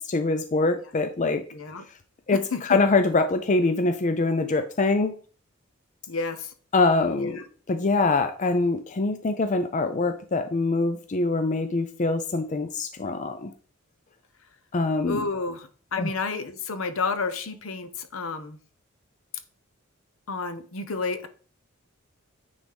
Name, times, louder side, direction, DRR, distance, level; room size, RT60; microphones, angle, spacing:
voice 1, 0.0-1.4 2.3-5.1 6.7-7.4 7.7-13.5 14.7-15.2 16.0-16.1, left 3 dB, 35° left, 7 dB, 0.5 m, -24 dB
voice 2, 1.5-1.8 2.5-2.6 6.1-6.5 7.2-7.5 15.1-18.6 20.3-21.3, left 4 dB, 70° left, 10 dB, 0.9 m, -31 dB
9.2 x 4.0 x 3.4 m, 0.41 s
head